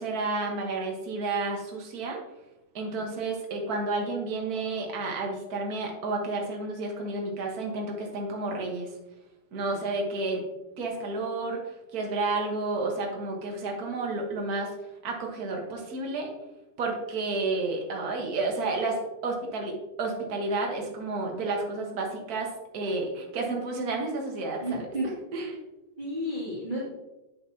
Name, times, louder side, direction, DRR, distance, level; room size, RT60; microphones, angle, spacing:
voice 1, 0.0-2.2 2.7-8.9 9.5-10.4 10.8-14.7 15.0-16.3 16.8-22.5 22.7-24.9 25.3-25.6, right 3 dB, 50° right, 0 dB, 1.1 m, -31 dB
voice 2, 24.6-25.1 26.0-26.9, equal, 15° right, -7 dB, 2.1 m, -33 dB
9.3 x 6.0 x 2.8 m, 0.98 s
omnidirectional pair, 3.5 m